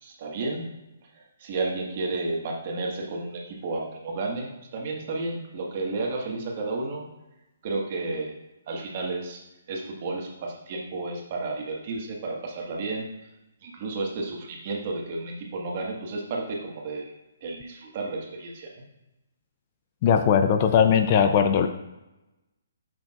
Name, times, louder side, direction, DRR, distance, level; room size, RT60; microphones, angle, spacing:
voice 1, 0.0-0.7 1.1-7.1 7.6-8.3 8.7-9.4 9.7-13.3 13.6-17.1 17.4-18.8, right 3 dB, 40° right, -1 dB, 1.6 m, -32 dB
voice 2, 20.0-21.7, left 7 dB, 35° left, 8 dB, 0.5 m, -19 dB
8.5 x 6.3 x 2.5 m, 0.96 s
hypercardioid pair, 155°, 0 cm